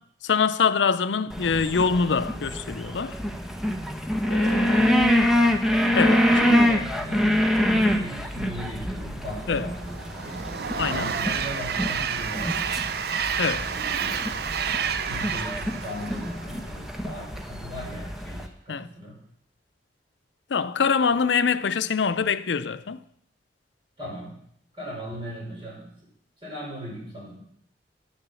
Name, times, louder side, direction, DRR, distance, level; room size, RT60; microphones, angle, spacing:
voice 1, 0.2-3.2 4.3-4.8 5.9-6.6 7.7-8.0 9.5-9.7 10.8-11.1 13.4-13.7 18.7-18.9 20.5-23.0, left 5 dB, 85° left, 0.5 m, -24 dB
sound 1, 1.3-18.5, equal, ahead, 0.8 m, -26 dB
voice 2, 4.7-5.2 6.2-10.4 10.9-13.0 15.0-19.2 24.0-24.4 24.7-25.9 26.4-27.4, equal, 30° right, 6.1 m, -38 dB
Train, 9.5-17.0, right 7 dB, 60° right, 0.6 m, -30 dB
10.5 x 7.0 x 6.9 m
head